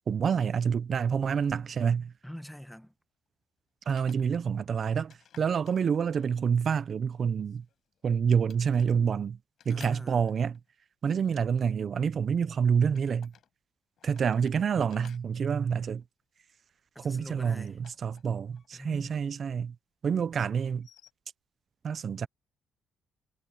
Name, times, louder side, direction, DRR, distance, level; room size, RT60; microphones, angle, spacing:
voice 1, 0.1-2.1 3.9-7.6 8.0-9.4 9.7-10.6 11.0-13.3 14.0-16.0 17.0-19.7 20.0-20.9 21.8-22.3, right 7 dB, 50° right, 0.7 m, -28 dB
sound 1, 1.7-1.8 3.8-4.5 5.1-6.4 7.4-8.1 8.4-8.9 9.6-10.7 12.8-13.5 14.0-16.4 17.4-18.7 18.9-19.0 20.7-21.1, left 9 dB, 65° left, 7.7 m, -57 dB
voice 2, 2.2-2.9 9.7-10.3 16.9-17.8 18.7-19.2, equal, ahead, 1.2 m, -44 dB
cardioid pair, 90°, 0 cm